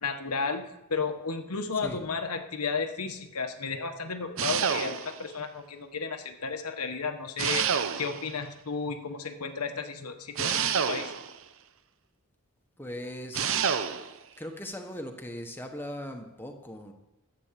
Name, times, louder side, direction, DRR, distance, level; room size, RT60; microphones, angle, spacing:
voice 1, 0.0-0.6 0.9-11.1, left 4 dB, 85° left, 6 dB, 1.3 m, -33 dB
sound 1, 4.4-5.3 7.4-8.3 10.4-11.4 13.3-14.1, right 7 dB, 60° right, 0.8 m, -28 dB
voice 2, 12.8-13.6 14.4-16.9, left 1 dB, 10° left, 4 dB, 1.2 m, -39 dB
12.0 x 8.1 x 7.5 m, 0.95 s
head